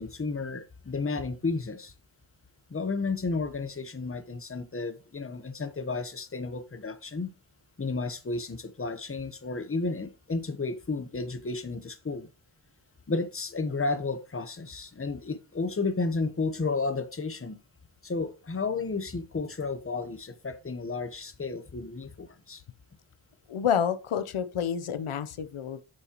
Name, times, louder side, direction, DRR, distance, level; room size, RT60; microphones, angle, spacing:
voice 1, 0.0-1.9 2.7-7.3 7.8-12.3 13.1-17.6 18.0-22.6, left 3 dB, 25° left, 1.0 m, -32 dB
voice 2, 23.5-25.8, left 8 dB, 90° left, 0.8 m, -29 dB
8.9 x 7.0 x 3.0 m
wide cardioid pair, 95°, 49 cm